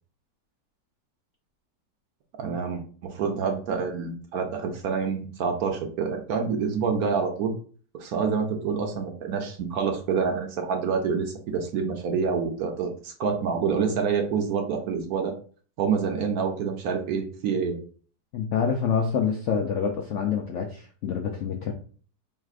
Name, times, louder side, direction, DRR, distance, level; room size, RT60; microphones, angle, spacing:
voice 1, 2.4-7.5 7.9-15.3 15.8-17.8, right 6 dB, 70° right, 4 dB, 1.0 m, -27 dB
voice 2, 18.3-21.7, left 6 dB, 80° left, 2 dB, 0.6 m, -26 dB
4.6 x 3.2 x 2.4 m, 0.42 s
omnidirectional pair, 1.8 m